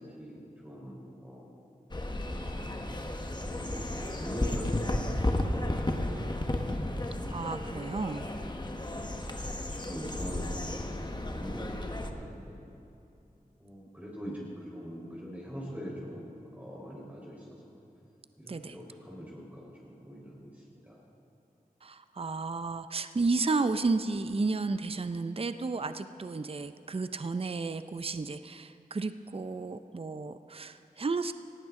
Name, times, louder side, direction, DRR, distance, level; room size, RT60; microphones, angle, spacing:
voice 1, 0.2-1.5 2.2-2.9 3.3-7.0 8.7-9.1 9.5-11.8 12.0-12.7 13.6-14.4 14.7-17.7 18.4-20.5 20.8-21.0, equal, 10° right, -5 dB, 4.3 m, -43 dB
sound 1, 1.9-12.1, left 1 dB, 30° left, 1.2 m, -33 dB
voice 2, 7.3-8.2 18.5-18.8 21.8-31.3, right 3 dB, 40° right, 10 dB, 0.5 m, -32 dB
19.0 x 15.0 x 3.8 m, 2.7 s
cardioid pair, 40°, 15 cm